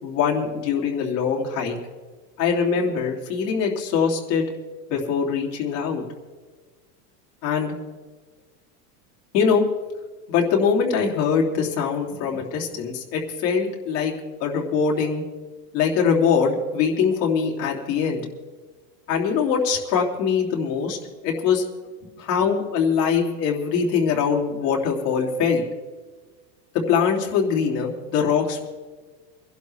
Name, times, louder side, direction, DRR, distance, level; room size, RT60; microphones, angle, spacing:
voice 1, 0.0-1.8 2.4-4.5 4.9-6.0 7.4-7.8 9.3-9.6 10.3-14.1 14.4-15.2 15.7-18.2 19.1-21.0 21.2-21.6 22.2-25.6 26.7-28.7, left 6 dB, 75° left, -1 dB, 3.3 m, -22 dB
24.0 x 11.5 x 3.4 m, 1.4 s
supercardioid pair, 140°, 49 cm